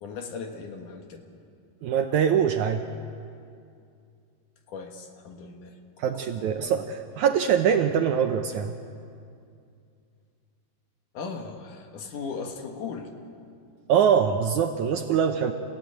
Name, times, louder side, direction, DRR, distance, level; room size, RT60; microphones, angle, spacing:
voice 1, 0.0-1.2 4.7-5.8 6.0-6.1 6.4-6.7 11.1-13.1, left 5 dB, 65° left, 4 dB, 2.9 m, -38 dB
voice 2, 1.8-2.8 6.0-6.8 7.2-8.7 13.9-15.5, right 8 dB, 75° right, 6 dB, 1.9 m, -23 dB
29.5 x 15.5 x 9.1 m, 2.4 s
omnidirectional pair, 4.2 m